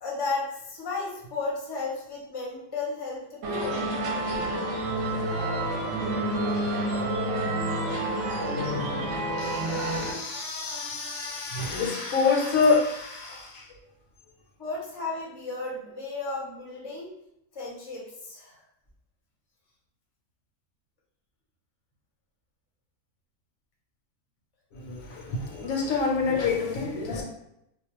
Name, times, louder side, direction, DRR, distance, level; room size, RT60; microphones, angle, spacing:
voice 1, 0.0-3.8 14.6-17.1 17.5-18.6, left 3 dB, 30° left, -5 dB, 0.5 m, -34 dB
sound 1, 3.4-10.1, right 1 dB, 70° right, 0.9 m, -29 dB
voice 2, 6.6-8.0 8.3-13.8 24.7-27.2, left 4 dB, 80° left, 1 dB, 1.0 m, -28 dB
2.4 x 2.0 x 2.9 m, 0.79 s
omnidirectional pair, 1.4 m